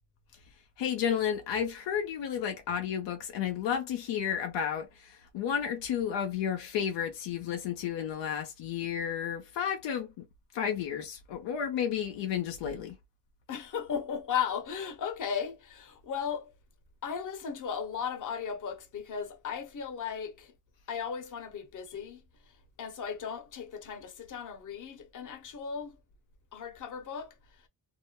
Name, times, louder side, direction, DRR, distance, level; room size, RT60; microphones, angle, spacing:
voice 1, 0.8-10.3 10.5-13.0, left 8 dB, 85° left, 0.6 m, -32 dB
voice 2, 13.5-16.5 17.0-20.5 20.9-22.2 22.8-26.0 26.5-27.3, left 7 dB, 45° left, 0.8 m, -36 dB
2.5 x 2.1 x 2.9 m
cardioid pair, 65°, 43 cm